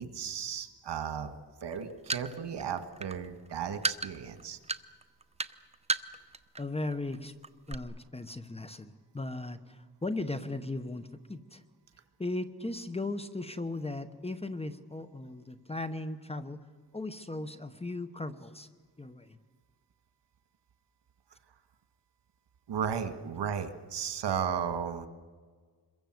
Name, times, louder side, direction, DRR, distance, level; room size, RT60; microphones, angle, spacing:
voice 1, 0.0-1.3 1.6-4.6 22.7-25.1, right 7 dB, 90° right, 9 dB, 1.9 m, -35 dB
sound 1, 1.7-6.6 6.9-7.2 7.4-7.8, right 3 dB, 15° right, 0.8 m, -33 dB
voice 2, 6.6-7.3 7.7-11.6 12.2-16.6 16.9-18.7 19.0-19.4, left 2 dB, 15° left, 10 dB, 1.0 m, -37 dB
27.0 x 22.5 x 7.8 m, 1.5 s
wide cardioid pair, 145°, 40 cm